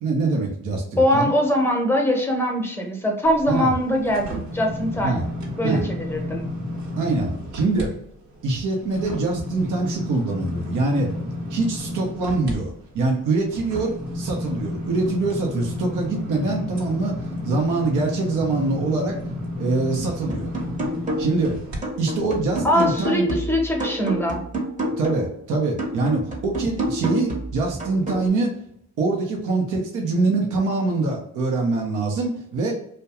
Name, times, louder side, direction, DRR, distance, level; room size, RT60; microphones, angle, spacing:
voice 1, 0.0-1.3 3.5-3.7 5.0-5.2 5.6-5.8 7.0-7.9 8.4-11.1 11.5-19.1 19.6-20.5 21.2-21.5 22.0-23.3 25.0-28.5 29.0-32.7, right 3 dB, 85° right, 0 dB, 0.7 m, -24 dB
voice 2, 1.0-5.2 5.6-6.4 22.6-24.4, equal, 10° left, 1 dB, 0.7 m, -22 dB
sound 1, 3.2-7.9 8.3-21.8 22.3-22.4, left 1 dB, 65° right, 1.0 m, -32 dB
sound 2, 20.3-21.5 21.8-25.3 25.8-28.3, equal, 25° right, 0.8 m, -29 dB
2.3 x 2.2 x 2.9 m, 0.71 s
cardioid pair, 90°, 30 cm